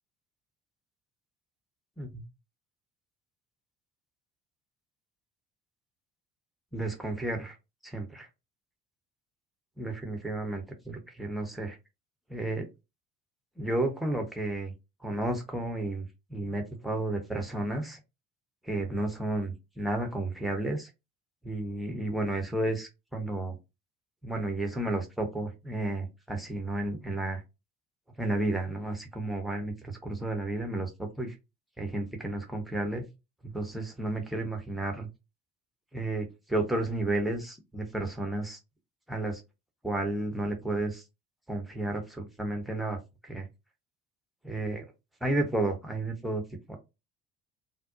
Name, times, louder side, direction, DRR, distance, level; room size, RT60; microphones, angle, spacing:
voice 1, 6.7-7.6 7.8-8.3 9.8-11.8 12.3-12.7 13.6-14.7 15.0-18.0 18.6-20.9 21.4-23.6 24.2-27.4 28.2-31.3 31.8-33.0 33.4-35.1 35.9-38.6 39.1-39.4 39.8-41.0 41.5-43.5 44.4-44.8 45.2-46.4 46.7-46.8, right 1 dB, ahead, 3 dB, 0.6 m, -32 dB
2.5 x 2.0 x 2.4 m, 0.25 s
figure-of-eight pair, 55°, 41 cm